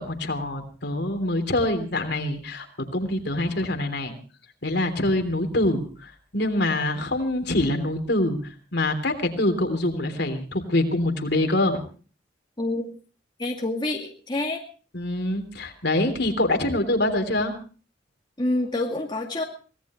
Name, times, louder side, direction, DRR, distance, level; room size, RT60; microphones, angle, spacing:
voice 1, 0.0-2.7 2.9-4.1 4.6-8.4 8.7-11.8 14.9-17.5, left 1 dB, 60° left, 5 dB, 3.4 m, -25 dB
voice 2, 13.4-14.6 18.4-19.4, left 2 dB, 25° left, 0 dB, 2.3 m, -27 dB
24.5 x 18.0 x 3.1 m, 0.38 s
head